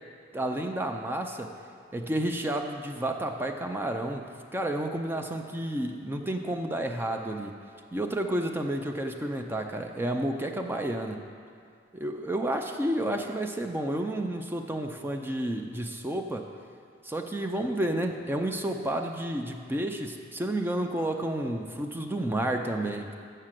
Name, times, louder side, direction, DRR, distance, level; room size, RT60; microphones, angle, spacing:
voice 1, 0.3-1.5 1.9-7.5 7.9-11.2 11.9-16.5 17.0-23.1, right 1 dB, 10° right, 4 dB, 0.4 m, -31 dB
6.6 x 6.3 x 7.4 m, 2.2 s
head